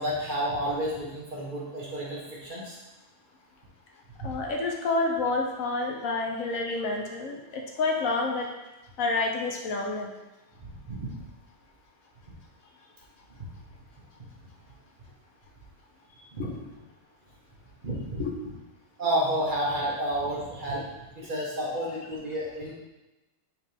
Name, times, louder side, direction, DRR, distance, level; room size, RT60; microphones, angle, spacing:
voice 1, 0.0-2.8 10.6-11.1 16.3-16.5 17.8-18.2 19.0-20.9 21.1-22.7, right 1 dB, 35° right, -5 dB, 1.6 m, -30 dB
voice 2, 4.2-8.5 9.0-10.1 16.4-16.6 18.2-18.4 21.6-22.0, left 3 dB, 80° left, 1 dB, 1.3 m, -29 dB
6.4 x 4.4 x 3.5 m, 1.0 s
omnidirectional pair, 1.4 m